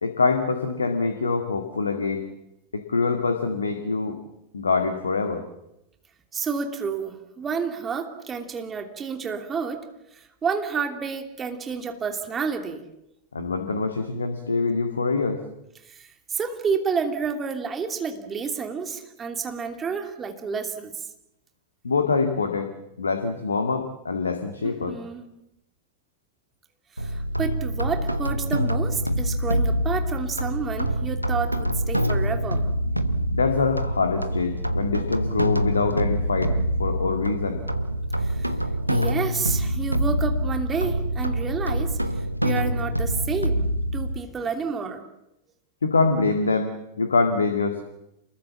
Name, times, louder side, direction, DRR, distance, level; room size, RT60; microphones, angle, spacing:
voice 1, 0.0-2.3 2.7-4.2 4.5-5.5 13.3-15.4 21.8-22.7 23.0-25.0 33.3-36.5 36.8-37.6 45.8-47.8, left 4 dB, 75° left, 7 dB, 2.0 m, -24 dB
voice 2, 6.3-9.9 10.1-12.8 15.8-20.9 24.6-25.2 27.0-32.7 38.2-38.5 38.9-45.0, right 5 dB, 20° right, 5 dB, 2.8 m, -30 dB
sound 1, 27.0-44.2, equal, 90° right, 1.2 m, -25 dB
28.0 x 21.5 x 7.3 m, 0.86 s
figure-of-eight pair, 90°, 0 cm